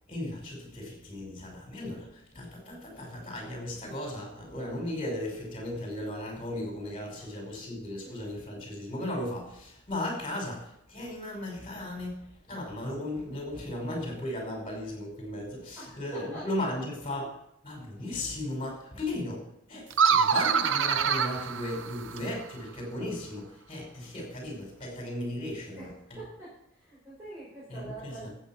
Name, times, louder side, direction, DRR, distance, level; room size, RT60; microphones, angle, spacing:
voice 1, 0.1-12.2 12.5-17.3 17.6-25.9 27.7-28.3, left 1 dB, 30° left, 0 dB, 5.3 m, -36 dB
voice 2, 15.8-16.7 25.6-25.9 26.2-28.4, right 2 dB, 15° right, -9 dB, 5.7 m, -45 dB
sound 1, 19.9-22.4, right 6 dB, 70° right, 0.6 m, -25 dB
13.5 x 8.5 x 5.9 m, 0.76 s
head